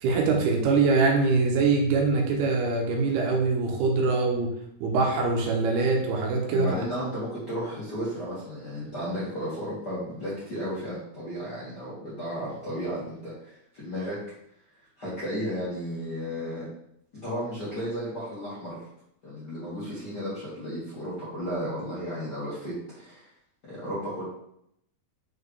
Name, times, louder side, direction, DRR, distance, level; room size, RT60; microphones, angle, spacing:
voice 1, 0.0-4.5 4.8-6.7, right 4 dB, 80° right, 0 dB, 3.0 m, -23 dB
voice 2, 6.5-14.2 15.0-16.7 17.2-18.8 19.2-23.3 23.7-24.2, equal, 40° left, -11 dB, 1.5 m, -34 dB
6.6 x 4.7 x 3.3 m, 0.75 s
omnidirectional pair, 4.6 m